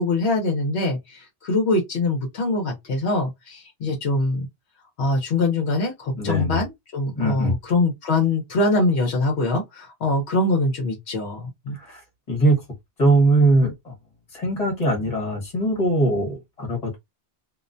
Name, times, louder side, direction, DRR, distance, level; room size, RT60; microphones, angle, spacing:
voice 1, 0.0-4.5 5.0-11.8, left 2 dB, 70° left, 1.0 m, -23 dB
voice 2, 6.1-6.6 7.2-7.5 11.7-12.0 12.3-12.6 13.0-13.9 14.3-17.0, right 2 dB, 35° left, 1.3 m, -21 dB
2.5 x 2.1 x 2.5 m
omnidirectional pair, 1.1 m